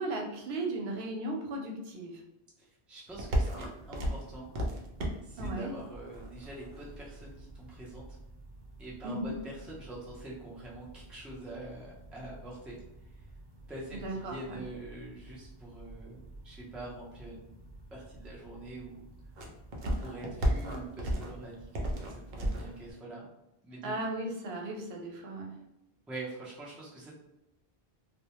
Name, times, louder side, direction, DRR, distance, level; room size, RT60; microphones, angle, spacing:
voice 1, 0.0-2.2 5.4-5.7 9.0-9.3 13.9-14.6 23.8-25.5, right 2 dB, 85° right, 1 dB, 0.8 m, -36 dB
voice 2, 2.9-4.6 5.2-8.2 8.8-12.8 13.7-17.6 17.9-19.1 19.8-23.3 23.6-24.0 26.1-27.1, right 2 dB, ahead, -5 dB, 0.4 m, -45 dB
sound 1, 3.1-22.9, equal, 60° right, 0.6 m, -38 dB
2.1 x 2.1 x 2.8 m, 0.85 s
omnidirectional pair, 1.0 m